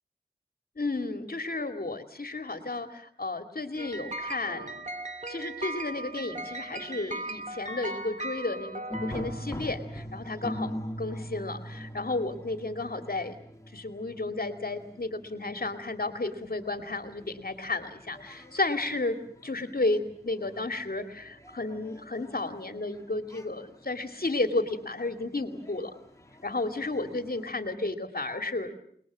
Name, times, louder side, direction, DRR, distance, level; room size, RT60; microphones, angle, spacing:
voice 1, 0.8-4.8 5.3-13.4 13.7-19.2 19.4-26.0 26.4-28.8, left 2 dB, 65° left, 7 dB, 2.6 m, -32 dB
sound 1, 3.8-9.8, right 2 dB, 45° right, 2.7 m, -38 dB
sound 2, 8.9-27.5, equal, 20° left, 3.2 m, -43 dB
29.5 x 21.0 x 7.5 m, 0.62 s
wide cardioid pair, 60°, 17 cm